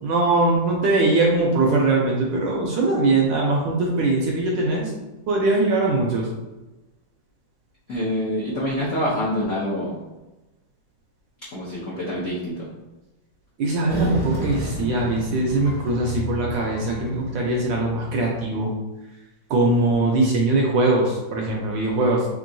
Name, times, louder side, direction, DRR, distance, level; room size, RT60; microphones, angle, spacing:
voice 1, 0.0-4.9 5.3-6.3 13.6-18.7 19.5-22.3, right 2 dB, 70° right, -1 dB, 1.1 m, -21 dB
voice 2, 7.9-10.0 11.5-12.7, equal, 70° left, -7 dB, 0.7 m, -26 dB
sound 1, 13.9-18.4, right 1 dB, 25° right, 0.5 m, -30 dB
3.6 x 3.3 x 2.6 m, 1.1 s
omnidirectional pair, 2.4 m